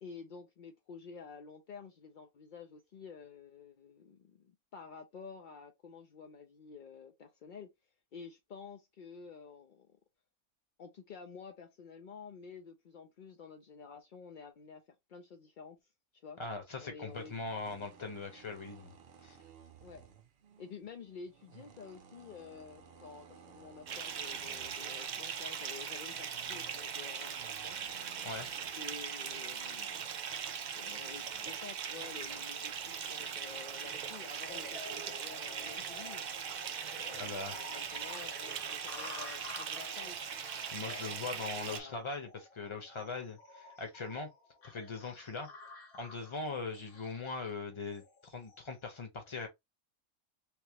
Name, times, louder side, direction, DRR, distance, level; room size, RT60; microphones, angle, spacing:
voice 1, 0.0-7.7 8.1-10.0 10.8-14.8 15.1-15.8 16.1-16.4 16.8-17.3 19.8-20.1 20.6-28.1 28.7-30.1 30.8-36.3 36.9-40.2 40.9-41.0 41.6-42.0, left 5 dB, 65° left, 0.5 m, -50 dB
voice 2, 16.4-18.9 19.2-19.4 28.2-28.5 37.2-37.6 40.7-44.3 44.6-45.5 45.9-49.5, left 4 dB, 25° left, 0.8 m, -41 dB
sound 1, 17.1-28.7, right 7 dB, 55° right, 0.8 m, -58 dB
Bathtub (filling or washing) / Fill (with liquid), 23.9-41.8, right 7 dB, 90° right, 0.4 m, -40 dB
sound 2, 34.5-48.7, left 2 dB, 85° left, 1.5 m, -51 dB
3.4 x 2.8 x 2.9 m
omnidirectional pair, 1.5 m